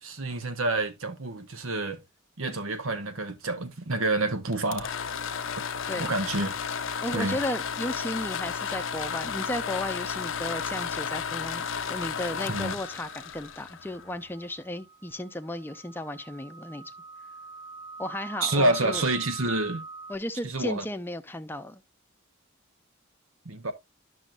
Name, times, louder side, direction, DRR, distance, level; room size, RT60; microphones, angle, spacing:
voice 1, 0.0-2.0 2.4-4.9 6.0-6.5 7.1-7.4 12.5-12.8 18.4-19.8 20.4-20.8 23.4-23.7, right 2 dB, 85° right, 1.2 m, -28 dB
sound 1, 4.5-14.3, left 6 dB, 70° left, 0.6 m, -33 dB
voice 2, 7.0-16.9 18.0-19.0 20.1-21.8, left 1 dB, 10° left, 0.6 m, -34 dB
sound 2, 12.4-20.2, right 3 dB, 20° right, 0.9 m, -45 dB
10.5 x 6.3 x 2.4 m
head